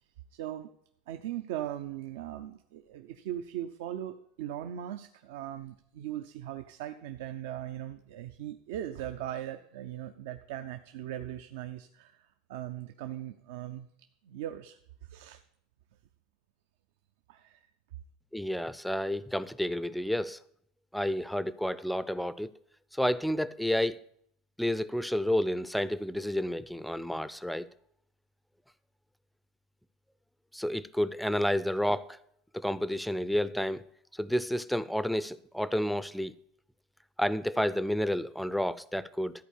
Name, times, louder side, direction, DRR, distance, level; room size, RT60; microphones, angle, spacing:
voice 1, 0.3-0.7 1.1-13.9 14.2-15.4 17.3-17.6, right 12 dB, 75° right, 0.6 m, -39 dB
voice 2, 18.3-20.4 20.9-22.5 22.9-24.0 24.6-27.7 30.5-32.2 32.5-33.8 34.1-36.3 37.2-39.3, equal, ahead, 0.4 m, -30 dB
13.0 x 4.6 x 8.3 m
supercardioid pair, 135°, 0 cm